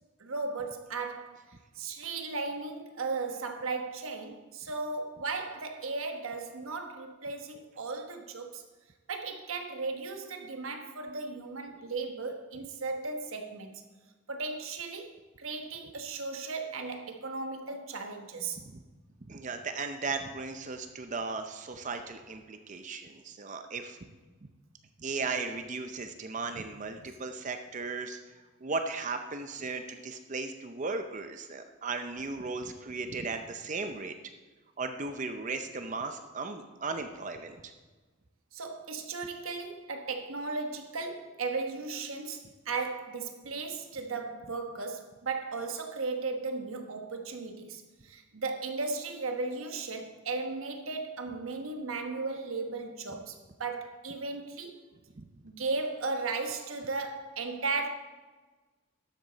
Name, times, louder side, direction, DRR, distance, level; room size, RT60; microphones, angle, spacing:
voice 1, 0.2-1.5 1.7-8.6 9.1-13.8 14.3-18.6 38.5-54.8 55.4-57.9, right 3 dB, 80° right, 1.2 m, -36 dB
voice 2, 19.3-24.0 25.0-28.2 28.6-34.1 34.8-37.7 55.2-55.3, right 4 dB, 35° right, 0.6 m, -36 dB
12.0 x 8.1 x 4.0 m
head